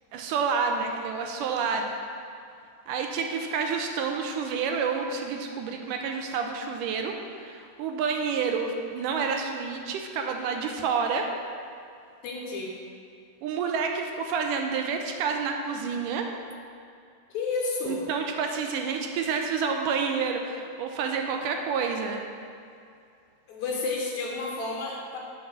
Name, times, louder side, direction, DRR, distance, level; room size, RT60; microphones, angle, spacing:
voice 1, 0.1-1.9 2.9-7.2 7.4-11.3 13.4-16.3 17.9-22.2, right 5 dB, 80° right, 3 dB, 2.1 m, -29 dB
voice 2, 12.2-12.7 17.3-18.0 23.5-25.2, left 3 dB, 65° left, -1 dB, 2.0 m, -31 dB
8.2 x 5.9 x 6.1 m, 2.4 s
omnidirectional pair, 3.9 m